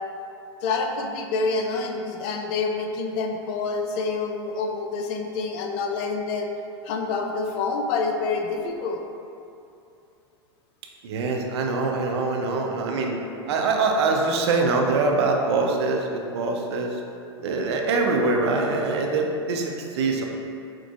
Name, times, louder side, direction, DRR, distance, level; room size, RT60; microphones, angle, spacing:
voice 1, 0.6-6.5 6.8-9.0, left 4 dB, 45° left, 3 dB, 0.4 m, -27 dB
voice 2, 11.0-13.1 13.5-16.9 17.4-20.3, right 3 dB, 70° right, 2 dB, 0.5 m, -24 dB
4.5 x 2.4 x 2.4 m, 2.6 s
hypercardioid pair, 100°, 14 cm